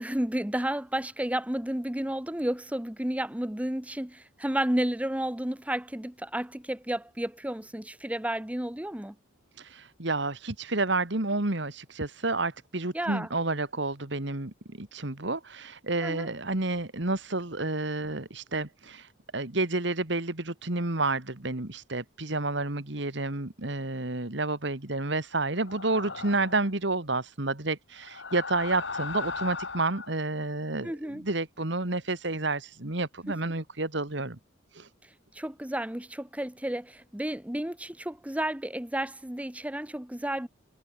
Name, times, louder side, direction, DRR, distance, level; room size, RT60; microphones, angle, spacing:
voice 1, 0.0-9.1 12.9-13.3 16.0-16.3 30.8-31.2 35.3-40.5, right 1 dB, 5° right, 0.8 m, -32 dB
voice 2, 9.6-34.4 34.7-34.9, right 2 dB, 60° right, 2.0 m, -30 dB
sound 1, 25.5-26.7 28.0-30.1, left 4 dB, 60° left, 2.4 m, -37 dB
head